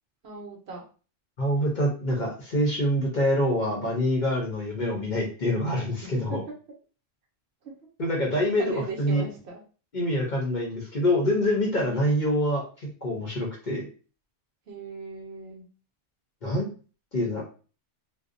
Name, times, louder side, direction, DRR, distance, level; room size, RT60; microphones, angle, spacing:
voice 1, 0.2-0.8 6.0-6.4 7.6-7.7 8.6-9.6 11.7-12.1 14.7-15.6, right 2 dB, 65° right, 0 dB, 0.9 m, -38 dB
voice 2, 1.4-6.4 8.0-9.2 9.9-13.8 16.4-16.7 17.1-17.4, left 1 dB, 50° left, -2 dB, 0.7 m, -26 dB
2.6 x 2.0 x 2.5 m, 0.37 s
omnidirectional pair, 1.3 m